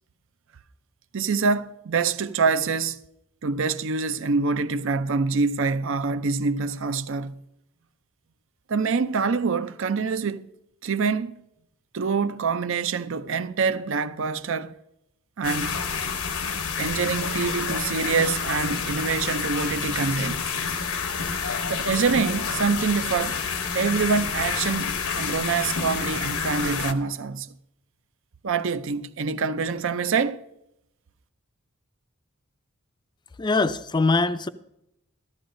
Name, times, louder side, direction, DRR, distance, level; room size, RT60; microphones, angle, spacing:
voice 1, 1.1-3.0 3.4-7.4 8.7-10.5 10.8-11.4 11.9-14.7 15.4-15.8 16.8-20.5 21.7-23.4 23.7-27.5 28.4-30.4, right 5 dB, 60° right, 0.5 m, -25 dB
sound 1, 15.4-26.9, left 5 dB, 85° left, 0.9 m, -28 dB
voice 2, 33.4-34.5, left 3 dB, 20° left, 0.4 m, -22 dB
14.5 x 13.0 x 2.6 m
head